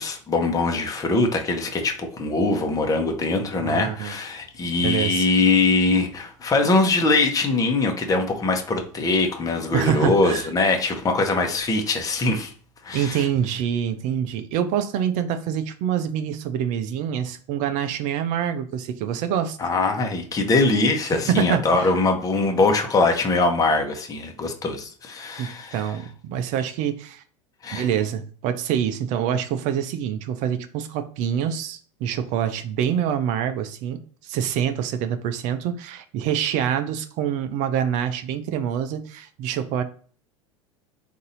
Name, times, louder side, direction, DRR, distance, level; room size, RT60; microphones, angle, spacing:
voice 1, 0.0-12.5 12.8-13.2 19.6-25.8 27.6-27.8, left 3 dB, 20° left, 1.0 m, -22 dB
voice 2, 3.5-4.2 4.8-5.3 9.7-10.5 12.9-19.6 21.3-21.9 25.4-27.2 27.7-39.8, right 9 dB, 50° right, 0.6 m, -26 dB
4.0 x 2.7 x 3.9 m
hypercardioid pair, 85°, 16 cm